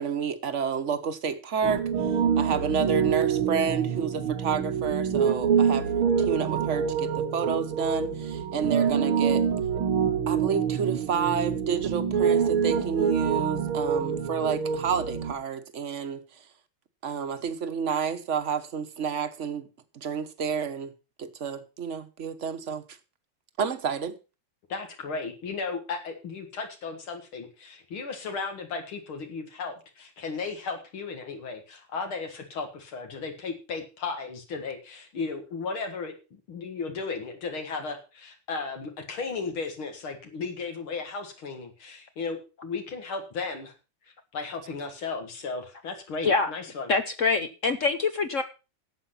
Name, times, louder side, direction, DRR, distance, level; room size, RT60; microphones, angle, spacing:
voice 1, 0.0-1.8 2.4-5.9 6.2-9.5 10.3-16.2 17.0-19.7 19.9-20.9 21.2-22.8 23.6-24.2, right 6 dB, 45° right, 1.2 m, -30 dB
Piano, 1.6-15.3, right 7 dB, 90° right, 2.3 m, -26 dB
voice 2, 24.7-43.7 44.1-46.9, left 4 dB, 80° left, 2.6 m, -35 dB
voice 3, 46.9-48.4, left 4 dB, 50° left, 0.9 m, -25 dB
12.0 x 8.0 x 5.7 m
omnidirectional pair, 2.3 m